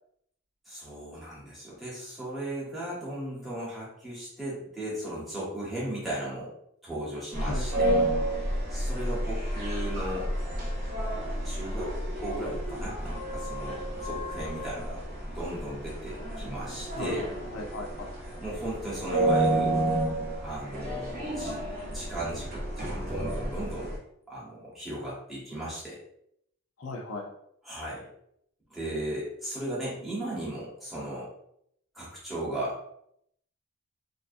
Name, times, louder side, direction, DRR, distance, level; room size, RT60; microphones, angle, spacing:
voice 1, 0.7-6.5 6.8-7.9 8.7-10.3 11.4-11.9 12.2-17.3 18.4-19.8 20.4-21.6 21.9-23.9 24.3-26.0 27.6-28.1 28.7-31.3 31.9-32.8, right 1 dB, ahead, -8 dB, 0.9 m, -36 dB
sound 1, 7.3-24.0, right 1 dB, 45° right, 0.7 m, -31 dB
voice 2, 7.4-8.1 17.0-18.1 26.8-27.3, left 2 dB, 80° left, 2 dB, 0.4 m, -37 dB
2.5 x 2.2 x 2.4 m, 0.73 s
head